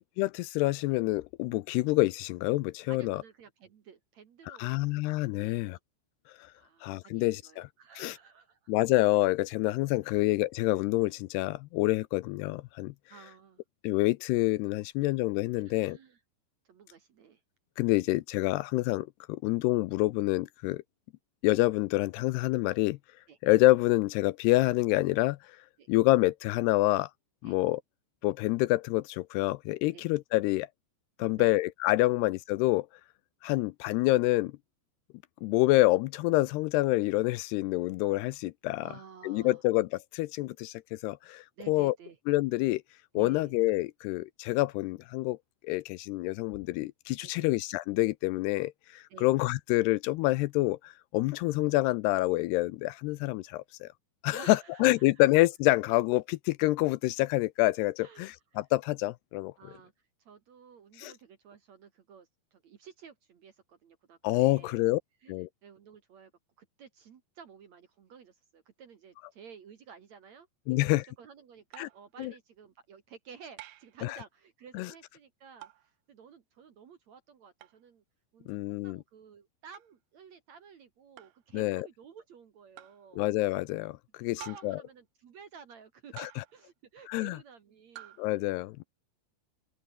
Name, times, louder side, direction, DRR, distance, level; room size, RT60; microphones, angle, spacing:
voice 1, 0.2-3.2 4.5-5.8 6.4-6.5 6.8-7.7 8.0-8.2 8.7-12.9 13.8-16.0 17.8-20.8 21.4-23.0 23.4-25.6 25.9-27.1 27.4-27.8 28.2-30.7 31.2-32.9 33.4-34.5 35.4-38.9 39.2-41.9 42.3-42.8 43.2-45.4 45.6-53.9 54.2-59.5 61.0-61.1 64.2-65.0 65.3-65.5 70.7-71.1 71.8-71.9 72.2-72.3 74.0-74.2 74.7-74.9 78.5-79.0 81.5-81.9 83.1-84.8 86.1-86.4 87.1-87.4 88.2-88.8, left 19 dB, 80° left, 2.6 m, -27 dB
voice 2, 2.9-4.9 5.4-5.8 6.6-8.7 10.0-10.2 13.1-13.6 15.6-16.2 16.6-17.4 23.3-23.4 25.8-25.9 27.4-27.6 29.9-30.1 31.2-31.5 32.1-32.2 38.8-39.6 41.6-42.2 43.1-43.6 47.2-47.5 49.1-49.3 54.3-55.1 58.0-58.3 59.6-59.9 60.2-64.8 65.2-66.3 66.6-78.0 78.3-83.3 84.2-88.2, right 6 dB, 55° right, 2.3 m, -53 dB
sound 1, 71.7-72.1 73.6-74.0 75.6-75.9 77.6-77.8 79.7-79.9 81.2-81.4 82.8-83.0 84.4-84.9 86.2-86.6 88.0-88.3, right 14 dB, 70° right, 2.8 m, -49 dB
open air
omnidirectional pair, 5.0 m